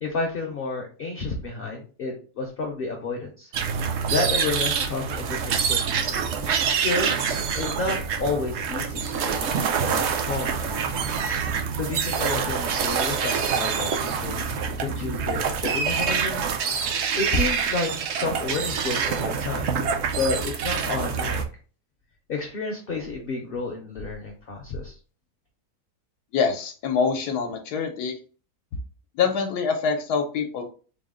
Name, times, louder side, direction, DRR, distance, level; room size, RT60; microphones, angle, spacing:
voice 1, 0.0-3.5 4.1-6.0 6.7-7.1 7.5-9.4 9.7-11.0 11.7-14.4 14.8-16.5 16.7-16.9 17.2-19.7 20.1-21.4 22.3-24.9, left 3 dB, 55° left, 2 dB, 0.6 m, -30 dB
sound 1, 3.5-21.4, right 6 dB, 65° right, 0.7 m, -26 dB
voice 2, 26.3-28.2 29.1-30.7, left 6 dB, 85° left, 4 dB, 1.2 m, -25 dB
3.9 x 2.0 x 3.6 m, 0.38 s
omnidirectional pair, 1.6 m